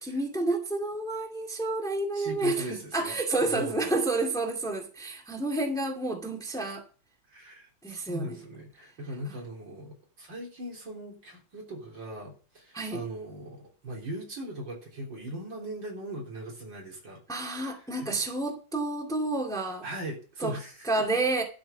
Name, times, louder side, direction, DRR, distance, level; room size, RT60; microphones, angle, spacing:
voice 1, 0.0-6.8 7.8-8.4 12.7-13.0 17.3-19.8 20.4-20.6 20.8-21.4, right 2 dB, ahead, 2.0 m, -30 dB
voice 2, 2.1-3.9 7.3-17.2 18.0-18.2 19.8-20.8, right 1 dB, 65° right, 4.3 m, -39 dB
12.0 x 6.2 x 7.2 m
omnidirectional pair, 2.2 m